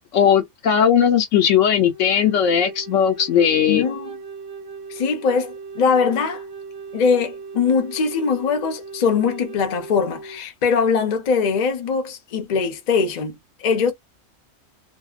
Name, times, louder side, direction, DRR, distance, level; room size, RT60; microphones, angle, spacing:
voice 1, 0.1-3.8, left 8 dB, 75° left, 1.0 m, -18 dB
Wind instrument woodwind instrument, 1.8-10.4, right 4 dB, 50° right, 1.0 m, -38 dB
voice 2, 3.7-4.2 4.9-6.4 6.9-13.9, left 5 dB, 45° left, 0.6 m, -21 dB
2.7 x 2.0 x 2.3 m
omnidirectional pair, 1.3 m